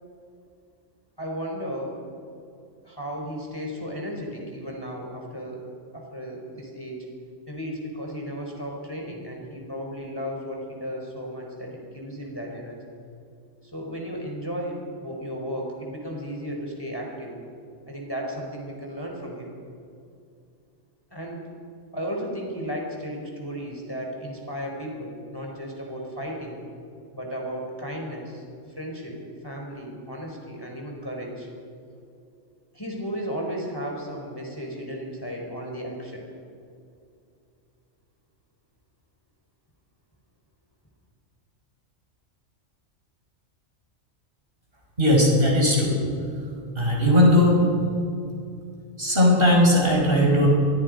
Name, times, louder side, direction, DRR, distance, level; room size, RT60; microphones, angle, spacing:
voice 1, 1.2-2.0 2.8-5.7 5.9-7.1 7.5-12.8 13.6-17.4 17.9-19.5 21.1-21.5 21.9-26.6 27.1-28.4 28.8-29.2 29.4-31.5 32.7-36.3, equal, 20° left, -1 dB, 4.3 m, -34 dB
voice 2, 45.0-45.9 46.8-47.6 49.0-50.5, left 1 dB, 45° right, -1 dB, 5.9 m, -18 dB
26.5 x 23.0 x 5.3 m, 2.5 s
omnidirectional pair, 1.3 m